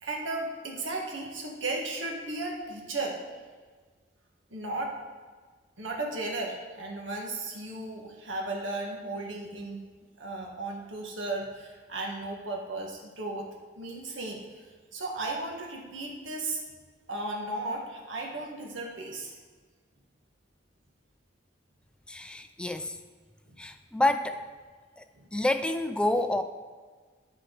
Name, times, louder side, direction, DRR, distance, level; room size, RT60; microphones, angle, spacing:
voice 1, 0.0-3.2 4.5-5.0 5.8-9.9 10.2-13.5 13.8-14.6 14.9-16.6 17.1-19.4 23.5-23.6 25.1-25.3, right 2 dB, 85° right, -1 dB, 1.6 m, -35 dB
voice 2, 22.1-23.0 23.6-24.4 25.0-25.1 25.3-26.4, left 1 dB, 5° left, 9 dB, 0.3 m, -28 dB
12.5 x 4.7 x 3.9 m, 1.5 s
head